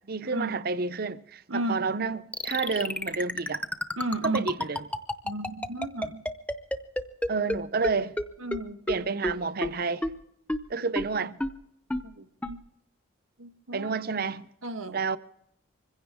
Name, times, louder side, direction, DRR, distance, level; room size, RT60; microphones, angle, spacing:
voice 1, 0.1-3.7 4.2-4.8 7.3-8.2 8.9-10.1 10.7-11.4 13.7-14.5 14.9-15.2, right 4 dB, 45° right, 0.7 m, -30 dB
voice 2, 1.5-1.9 4.0-4.5 5.2-6.2 8.4-8.8 11.9-12.3 13.4-13.9 14.6-15.0, right 2 dB, 90° right, 1.4 m, -33 dB
sound 1, 2.3-7.6 7.8-7.9 8.2-8.3 8.5-8.6 8.9-9.0 9.2-9.3 9.6-9.7 10.0-10.1 10.5-10.6 11.0-11.1 11.4-11.5 11.9-12.0 12.4-12.5, left 1 dB, 5° left, 0.7 m, -28 dB
25.0 x 16.0 x 3.6 m
head